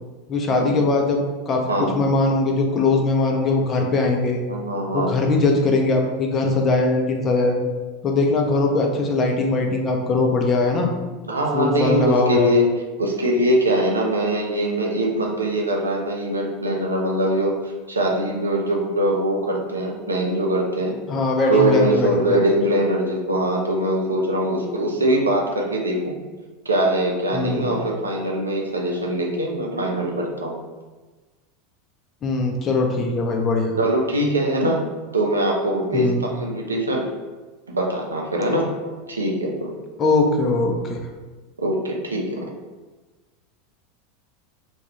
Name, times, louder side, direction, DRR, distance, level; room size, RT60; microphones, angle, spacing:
voice 1, 0.3-1.6 1.9-4.4 4.9-7.6 8.0-10.9 11.5-12.5 21.1-22.4 27.3-27.8 32.2-33.7 35.9-36.3 40.0-41.0, left 3 dB, 30° left, 1 dB, 0.5 m, -21 dB
voice 2, 4.5-5.1 11.3-12.7 13.0-21.0 21.4-26.2 26.7-30.6 33.8-34.8 35.1-37.1 37.7-39.7 41.6-42.5, right 1 dB, 85° right, 0 dB, 0.4 m, -22 dB
2.4 x 2.3 x 3.0 m, 1.2 s
figure-of-eight pair, 85°, 0 cm